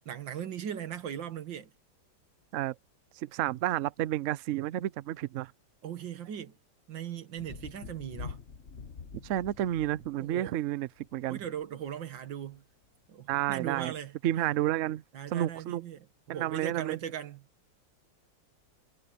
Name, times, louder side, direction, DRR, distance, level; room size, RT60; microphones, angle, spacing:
voice 1, 0.1-1.7 5.8-6.6 6.9-8.4 10.2-10.6 11.3-12.6 13.1-14.2 15.1-17.4, right 9 dB, 85° right, 2.1 m, -39 dB
voice 2, 3.1-5.5 9.2-11.4 13.3-13.9 14.2-15.0 15.3-15.8 16.3-17.0, right 13 dB, 70° right, 0.7 m, -30 dB
Thunder, 7.4-11.3 12.5-12.6, left 5 dB, 40° left, 1.6 m, -45 dB
omnidirectional pair, 2.0 m